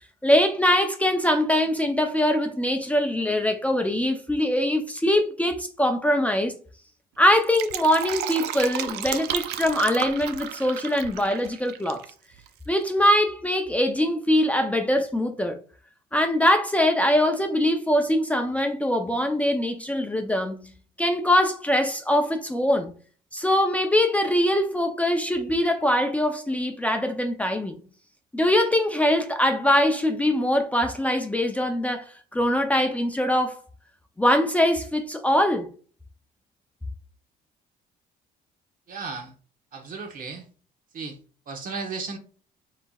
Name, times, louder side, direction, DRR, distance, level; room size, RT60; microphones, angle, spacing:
voice 1, 0.2-6.5 7.2-12.1 12.7-15.6 16.1-20.7 21.0-22.9 23.3-27.8 28.3-33.6 34.2-35.7, left 1 dB, 10° left, 0.5 m, -22 dB
Fill (with liquid), 7.3-12.1 12.4-12.5, right 11 dB, 75° right, 0.5 m, -33 dB
voice 2, 38.9-39.3 39.7-40.5 40.9-41.2 41.5-42.2, right 4 dB, 55° right, 1.1 m, -34 dB
4.4 x 4.1 x 2.4 m
cardioid pair, 110°, 17 cm